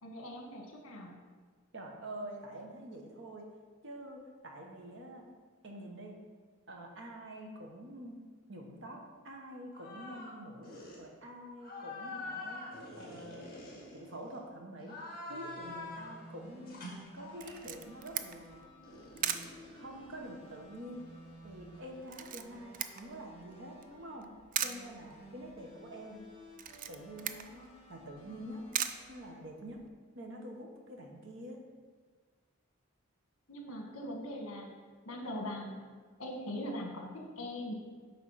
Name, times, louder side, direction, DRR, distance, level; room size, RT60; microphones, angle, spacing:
voice 1, 0.0-1.1 33.5-34.7 35.0-35.9 36.2-37.7, left 1 dB, 70° left, 1 dB, 1.4 m, -41 dB
voice 2, 1.7-3.5 3.8-5.3 5.6-6.2 6.7-8.2 8.5-12.7 13.0-13.5 13.9-15.0 15.3-16.8 17.1-18.6 19.2-21.1 21.4-24.3 24.6-26.2 26.9-28.7 29.1-29.8 30.1-31.6, right 1 dB, 55° right, 1 dB, 1.1 m, -47 dB
sound 1, 9.7-10.3 10.6-11.0 11.6-14.4 14.8-16.2 16.7-17.7 18.8-20.6, left 2 dB, 40° left, 2.1 m, -45 dB
sound 2, 15.3-29.3, equal, 25° left, 1.4 m, -55 dB
Camera, 17.4-29.9, right 9 dB, 40° right, 0.3 m, -42 dB
8.7 x 3.9 x 5.7 m, 1.5 s
head